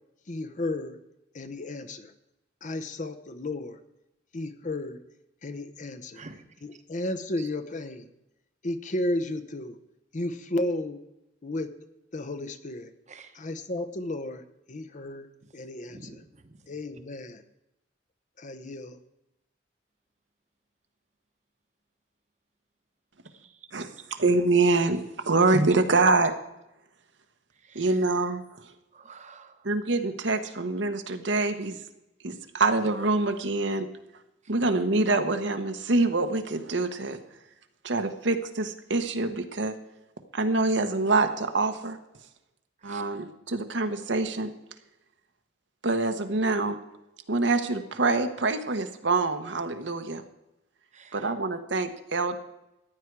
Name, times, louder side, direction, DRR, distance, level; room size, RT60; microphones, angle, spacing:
voice 1, 0.3-1.0 1.3-2.1 2.6-3.8 4.3-5.0 5.4-6.2 6.6-8.1 8.6-9.8 10.1-11.0 11.4-11.7 12.1-12.9 13.3-14.4 14.7-15.3 15.5-16.2 16.7-17.4 18.4-19.0, left 1 dB, 45° left, 11 dB, 0.8 m, -33 dB
voice 2, 13.1-13.4 15.9-16.6 23.3-23.7 27.6-28.0 28.9-29.7 42.8-43.0 50.9-51.3, right 4 dB, 40° right, 8 dB, 1.1 m, -49 dB
voice 3, 23.7-26.3 27.7-28.4 29.6-31.8 32.2-33.9 34.5-37.2 37.8-39.7 40.3-42.0 42.8-44.5 45.8-46.8 47.3-50.2 51.1-52.4, right 3 dB, 70° right, 7 dB, 1.1 m, -25 dB
14.5 x 9.8 x 4.7 m, 0.91 s
head